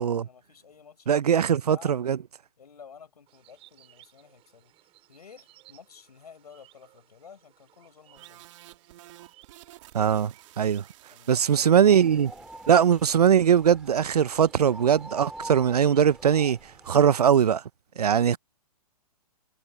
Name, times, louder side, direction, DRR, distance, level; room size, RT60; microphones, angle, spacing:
voice 1, 0.2-1.4 1.7-2.0 2.6-4.7 5.1-8.5 11.1-12.6 17.9-18.4, left 6 dB, 80° left, 6.6 m, -52 dB
voice 2, 1.1-2.2 9.9-10.8 11.3-12.3 12.7-16.6 16.9-17.6 18.0-18.4, right 8 dB, 80° right, 0.7 m, -21 dB
sound 1, 3.3-17.2, right 15 dB, 30° right, 7.5 m, -60 dB
sound 2, 8.2-13.1, right 15 dB, 50° right, 3.2 m, -53 dB
sound 3, 11.5-16.9, right 1 dB, 5° right, 5.4 m, -45 dB
hypercardioid pair, 125°, 20 cm